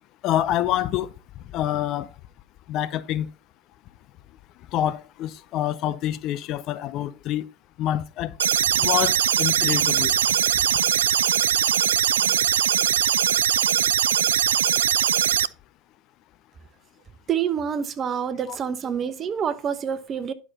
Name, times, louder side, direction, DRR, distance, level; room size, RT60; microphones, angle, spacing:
voice 1, 0.2-1.1 1.5-2.1 2.7-3.3 4.7-7.5 7.8-8.3 8.8-10.1 18.5-18.6, left 12 dB, 45° left, 0.7 m, -26 dB
sound 1, 8.4-15.5, right 9 dB, 75° right, 0.3 m, -21 dB
voice 2, 17.3-20.3, right 8 dB, 35° right, 1.0 m, -27 dB
11.0 x 6.1 x 4.1 m
figure-of-eight pair, 75°, 0 cm